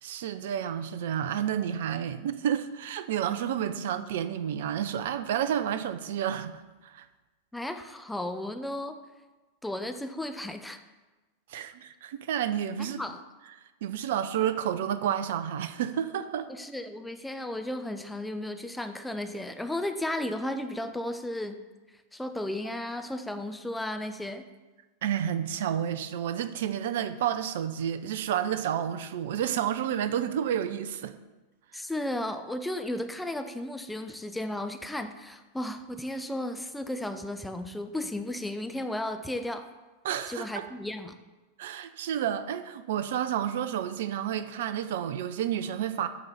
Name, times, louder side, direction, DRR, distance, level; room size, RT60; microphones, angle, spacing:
voice 1, 0.0-7.0 11.5-13.0 13.8-16.5 25.0-31.1 40.0-40.7 41.6-46.1, right 9 dB, 55° right, 11 dB, 0.4 m, -30 dB
voice 2, 7.5-9.0 9.6-10.8 12.9-13.2 16.5-21.6 22.1-24.4 31.7-39.7 40.3-41.2, left 1 dB, 5° left, 7 dB, 0.5 m, -34 dB
7.8 x 3.9 x 5.6 m, 1.2 s
figure-of-eight pair, 90°, 0 cm